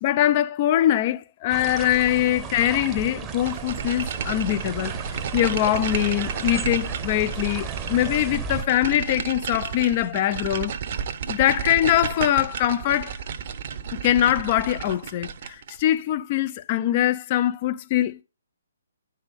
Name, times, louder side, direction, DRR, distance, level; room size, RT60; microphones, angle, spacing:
voice 1, 0.0-5.0 5.3-10.7 11.3-13.2 13.9-18.2, left 13 dB, 35° left, 0.5 m, -23 dB
sound 1, 1.5-8.6, right 5 dB, 20° right, 0.8 m, -34 dB
sound 2, 3.5-15.8, right 7 dB, 45° right, 0.7 m, -32 dB
9.5 x 5.5 x 3.5 m
figure-of-eight pair, 135°, 0 cm